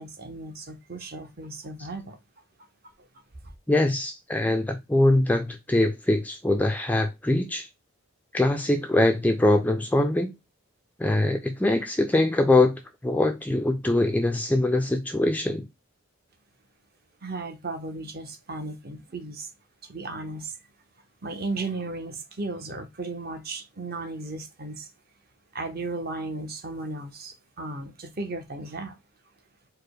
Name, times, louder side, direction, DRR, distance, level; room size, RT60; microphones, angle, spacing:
voice 1, 0.0-2.2 3.0-3.1 17.2-19.5 19.8-20.6 21.2-24.9 25.5-29.0, right 2 dB, 45° right, 0.8 m, -35 dB
voice 2, 3.7-7.7 8.3-10.3 11.0-15.7, left 2 dB, 5° left, 0.3 m, -23 dB
4.6 x 2.1 x 4.7 m
head